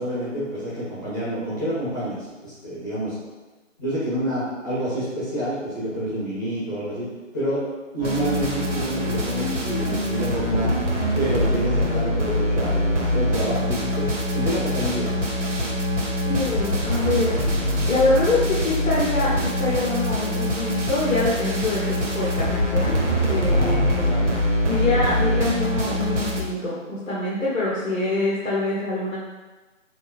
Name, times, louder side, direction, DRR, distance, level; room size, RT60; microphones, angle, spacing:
voice 1, 0.0-3.2 3.8-7.1 7.3-7.6 7.9-10.7 11.1-15.1 23.5-23.8 24.1-24.2, right 1 dB, 15° left, -12 dB, 1.0 m, -28 dB
sound 1, 8.0-26.4, equal, 65° right, 0.9 m, -24 dB
voice 2, 16.2-17.4 17.9-22.9 23.3-24.4 24.6-29.2, left 2 dB, 90° left, -7 dB, 1.1 m, -25 dB
3.4 x 3.3 x 3.0 m, 1.2 s
figure-of-eight pair, 170°, 39 cm